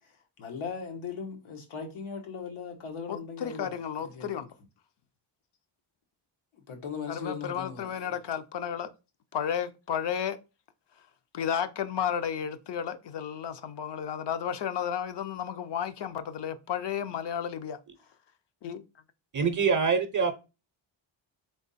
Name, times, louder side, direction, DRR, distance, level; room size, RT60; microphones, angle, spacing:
voice 1, 0.4-3.8 4.1-4.3 6.7-8.2, left 6 dB, 90° left, 1.2 m, -38 dB
voice 2, 3.1-4.5 7.1-8.9 9.3-10.4 11.3-17.8 18.6-18.8, left 8 dB, 60° left, 0.6 m, -33 dB
voice 3, 19.3-20.3, right 5 dB, 40° right, 0.5 m, -24 dB
3.6 x 3.5 x 4.0 m
wide cardioid pair, 145°, 47 cm